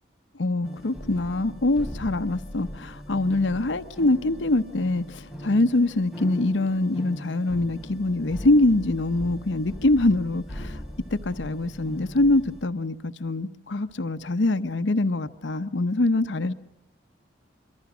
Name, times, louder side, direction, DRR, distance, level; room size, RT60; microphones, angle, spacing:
voice 1, 0.4-10.8 11.1-16.5, left 2 dB, 75° left, 0.9 m, -24 dB
sound 1, 0.6-12.6, equal, 5° right, 4.2 m, -40 dB
26.0 x 24.0 x 6.2 m
head